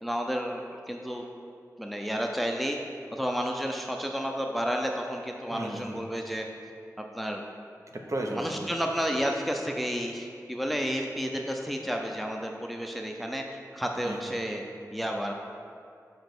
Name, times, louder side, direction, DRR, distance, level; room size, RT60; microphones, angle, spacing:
voice 1, 0.0-1.2 1.8-2.8 3.1-6.5 7.0-7.4 8.3-13.4 13.7-15.3, equal, ahead, 2 dB, 0.5 m, -31 dB
voice 2, 5.5-6.0 7.9-8.6 14.0-14.2, right 1 dB, 50° right, 1 dB, 0.9 m, -34 dB
5.2 x 5.0 x 6.0 m, 2.3 s
wide cardioid pair, 65°, 6 cm